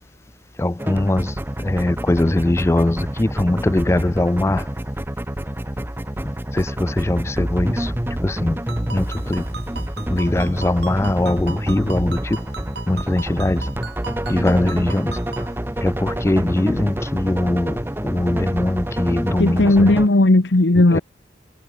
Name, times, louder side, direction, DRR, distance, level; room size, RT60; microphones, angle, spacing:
voice 1, 0.6-1.3 1.6-4.6 6.5-7.9 8.2-8.6 8.9-9.0 9.3-9.4 10.1-12.2 12.9-13.6 14.3-15.1 15.8-17.8 18.0-19.6 20.9-21.0, left 1 dB, 15° left, 0.3 m, -20 dB
sound 1, 0.8-20.1, right 1 dB, 10° right, 1.0 m, -27 dB
Ringtone, 8.7-15.5, right 5 dB, 60° right, 2.5 m, -38 dB
voice 2, 19.4-21.0, left 2 dB, 70° left, 1.1 m, -15 dB
head